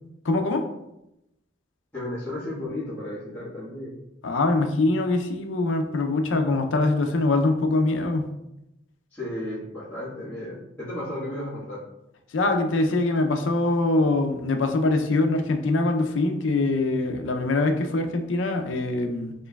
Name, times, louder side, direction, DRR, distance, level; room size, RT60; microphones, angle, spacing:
voice 1, 0.2-0.6 4.2-8.3 12.3-19.3, left 2 dB, 90° left, 5 dB, 0.5 m, -23 dB
voice 2, 1.9-3.9 9.1-11.8, left 1 dB, 10° left, -14 dB, 1.4 m, -34 dB
4.4 x 3.1 x 2.3 m, 0.87 s
head